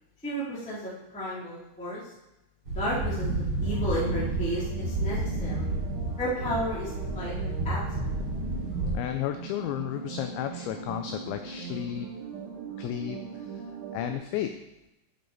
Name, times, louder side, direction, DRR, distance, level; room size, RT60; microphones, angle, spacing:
voice 1, 0.2-2.0 2.7-5.7 6.2-7.3 7.6-8.1, equal, 5° left, -8 dB, 0.7 m, -33 dB
sound 1, 2.7-8.9, right 2 dB, 30° right, 2.1 m, -31 dB
sound 2, 3.7-14.2, right 6 dB, 70° right, 4.2 m, -41 dB
voice 2, 8.9-12.1 12.8-13.6 13.9-14.5, left 11 dB, 90° left, 7 dB, 2.6 m, -33 dB
11.5 x 5.4 x 4.0 m, 0.92 s
omnidirectional pair, 5.7 m